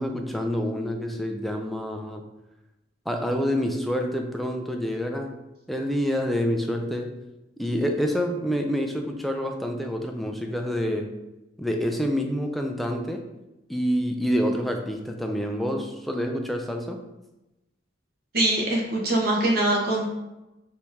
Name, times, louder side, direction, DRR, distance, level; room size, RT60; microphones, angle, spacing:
voice 1, 0.0-2.3 3.1-5.4 5.7-7.2 7.6-11.2 11.6-13.3 13.7-17.0, equal, ahead, 3 dB, 0.4 m, -27 dB
voice 2, 18.3-20.1, right 1 dB, 55° right, -2 dB, 1.0 m, -23 dB
4.6 x 2.7 x 3.4 m, 0.97 s
head